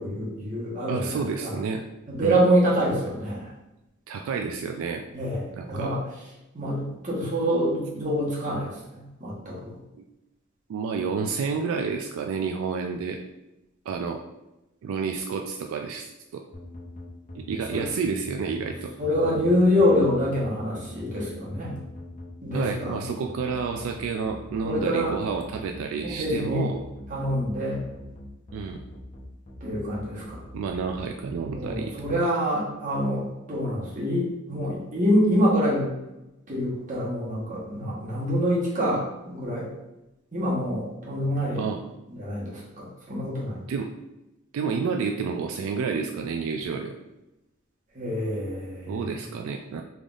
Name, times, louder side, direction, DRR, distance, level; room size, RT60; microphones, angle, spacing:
voice 1, 0.0-1.5 2.1-3.5 5.1-5.4 5.7-6.0 6.5-9.7 17.7-17.8 19.0-21.8 22.4-23.0 24.6-25.2 26.0-26.7 27.1-27.8 29.6-30.4 31.5-35.9 36.5-39.7 40.3-41.6 42.2-43.6 47.9-49.0, equal, 40° right, -6 dB, 1.3 m, -26 dB
voice 2, 0.9-1.8 2.2-2.4 4.1-5.0 5.5-5.9 9.9-10.0 10.7-13.2 13.9-14.2 14.8-16.4 17.3-18.9 22.5-26.8 28.5-28.8 30.5-31.9 41.6-41.8 43.7-43.9 44.5-46.9 48.9-49.8, right 5 dB, 80° right, 3 dB, 0.3 m, -30 dB
sound 1, 16.5-32.1, left 1 dB, 35° left, 0.6 m, -42 dB
3.7 x 3.4 x 2.5 m, 0.94 s
head